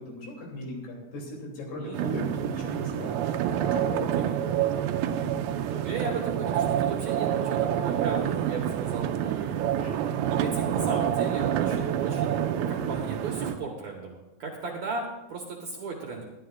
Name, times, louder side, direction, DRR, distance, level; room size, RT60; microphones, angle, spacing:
voice 1, 0.0-3.2 3.6-5.0 5.2-5.3 5.6-5.8 9.8-10.0, left 1 dB, 75° left, -1 dB, 4.9 m, -38 dB
voice 2, 1.8-2.1 3.9-4.4 5.2-5.5 5.8-9.5 10.2-12.4 12.7-16.2, right 4 dB, 60° right, 0 dB, 2.1 m, -36 dB
sound 1, 1.9-13.6, right 10 dB, 80° right, 2.4 m, -27 dB
20.0 x 12.0 x 2.4 m, 1.0 s
omnidirectional pair, 4.6 m